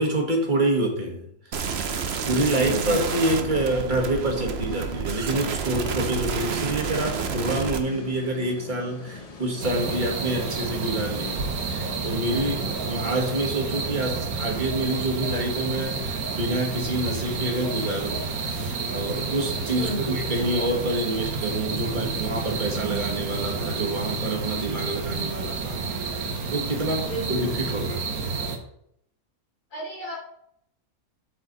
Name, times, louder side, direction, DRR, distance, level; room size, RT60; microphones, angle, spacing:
voice 1, 0.0-1.9 2.2-28.1, right 1 dB, 30° right, 1 dB, 1.8 m, -27 dB
sound 1, 1.5-7.8, right 6 dB, 50° right, 0.9 m, -29 dB
voice 2, 2.5-3.0 19.7-20.2 27.1-27.5 29.7-30.2, right 1 dB, 90° left, -6 dB, 3.9 m, -32 dB
sound 2, 6.4-13.9, left 3 dB, 30° left, 0.7 m, -44 dB
sound 3, 9.6-28.6, right 4 dB, 75° right, 1.6 m, -30 dB
12.5 x 4.6 x 4.0 m, 0.74 s
omnidirectional pair, 1.6 m